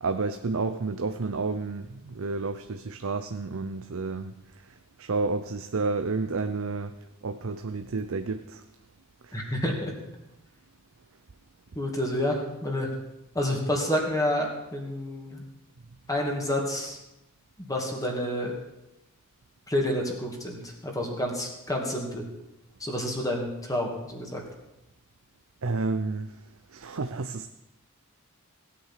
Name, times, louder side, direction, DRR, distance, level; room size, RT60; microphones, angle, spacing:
voice 1, 0.0-4.3 5.0-6.9 7.2-8.6 9.3-9.6 25.6-26.4 26.7-27.5, right 3 dB, 65° right, 9 dB, 0.7 m, -30 dB
voice 2, 9.3-9.9 11.7-12.9 13.3-15.4 16.1-17.0 17.6-18.5 19.7-22.2 22.8-24.4, left 1 dB, 15° left, 0 dB, 2.5 m, -29 dB
16.5 x 8.8 x 7.5 m, 0.92 s
head